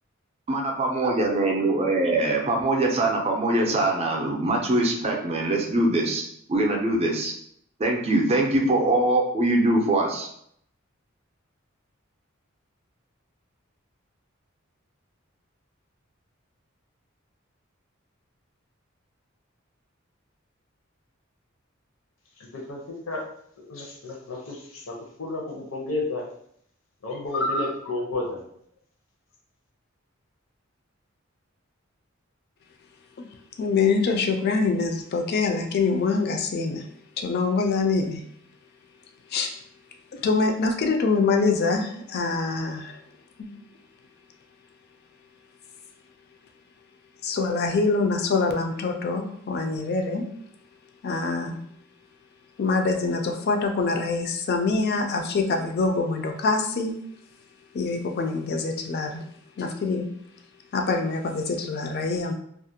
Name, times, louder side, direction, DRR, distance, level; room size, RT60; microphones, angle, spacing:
voice 1, 0.5-6.2 6.5-7.3 7.8-10.3, right 2 dB, 30° right, 1 dB, 0.4 m, -23 dB
voice 2, 23.6-24.9 25.2-26.2 27.0-28.4, left 2 dB, 75° left, -1 dB, 0.7 m, -30 dB
voice 3, 33.6-36.8 37.2-38.2 39.3-39.5 40.1-43.0 43.4-43.5 47.2-50.3 51.0-51.6 52.6-56.9 57.7-59.2 59.6-60.1 60.7-62.3, left 4 dB, 50° left, 4 dB, 0.3 m, -25 dB
2.4 x 2.1 x 2.7 m, 0.69 s
head